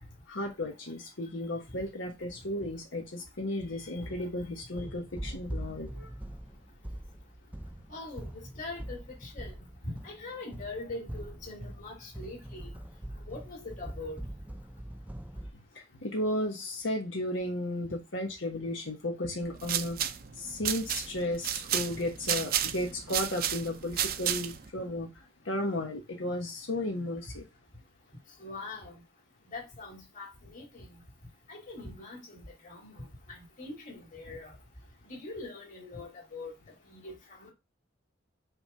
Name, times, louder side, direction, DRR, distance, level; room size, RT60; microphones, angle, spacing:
voice 1, 0.3-6.1 15.7-27.5, left 1 dB, 85° left, 1.3 m, -34 dB
sound 1, 3.8-15.5, right 1 dB, 10° right, 0.6 m, -43 dB
voice 2, 7.9-8.3 8.5-9.5 9.8-12.8 13.3-14.2 28.4-29.0 29.5-30.9 31.5-32.4 32.6-33.0 33.3-34.5 35.1-36.5 36.9-37.5, left 2 dB, 45° left, 2.7 m, -42 dB
sound 2, 19.4-24.7, right 10 dB, 50° right, 0.6 m, -32 dB
5.7 x 3.4 x 5.6 m
head